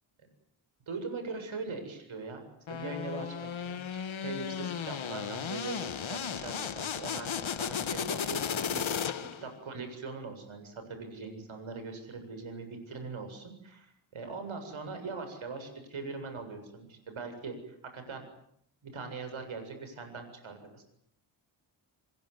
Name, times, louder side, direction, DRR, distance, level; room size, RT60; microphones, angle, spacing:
voice 1, 0.9-2.4 2.7-3.8 4.2-18.2 18.8-20.8, right 4 dB, 80° right, 7 dB, 7.6 m, -41 dB
sound 1, 2.7-9.5, left 7 dB, 75° left, 1.6 m, -35 dB
26.5 x 22.0 x 9.9 m, 0.72 s
wide cardioid pair, 120°, 48 cm